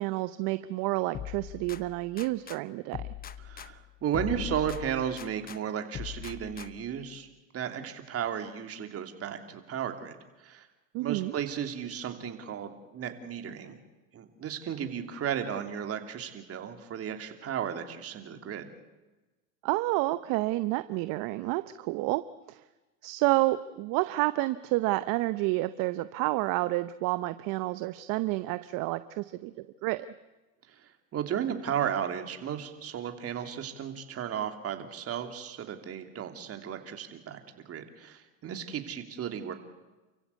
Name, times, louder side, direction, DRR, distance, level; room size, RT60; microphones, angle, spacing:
voice 1, 0.0-3.0 10.9-11.3 19.6-22.6 23.0-30.1, right 19 dB, 50° right, 13 dB, 0.9 m, -29 dB
sound 1, 1.1-2.6 2.9-5.6 5.9-7.0, left 10 dB, 20° left, 0.9 m, -41 dB
voice 2, 3.5-7.3 7.5-10.7 11.0-13.8 14.1-18.7 30.7-30.8 31.1-37.4 37.6-39.5, right 9 dB, 35° right, 6 dB, 3.1 m, -34 dB
29.5 x 15.5 x 8.3 m, 1.1 s
hypercardioid pair, 105°, 40 cm